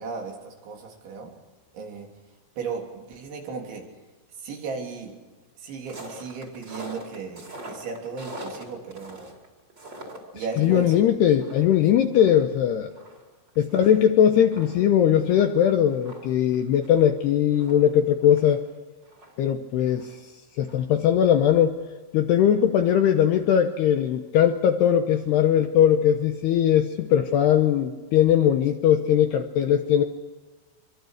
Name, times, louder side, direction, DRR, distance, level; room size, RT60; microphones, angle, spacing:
voice 1, 0.0-1.3 1.7-2.1 2.6-3.8 4.4-5.1 5.6-9.3 10.3-11.0 13.7-13.8, right 5 dB, 65° right, 1 dB, 5.6 m, -35 dB
sound 1, 5.9-10.9 11.2-13.9 14.2-14.3 14.5-18.6 19.0-20.3 20.6-20.7, right 1 dB, 25° right, 4.4 m, -43 dB
voice 2, 10.6-12.9 13.6-18.6 19.4-20.1 20.6-21.8 22.1-30.0, left 10 dB, 75° left, 6 dB, 2.5 m, -20 dB
26.0 x 24.5 x 6.6 m, 1.2 s
omnidirectional pair, 5.8 m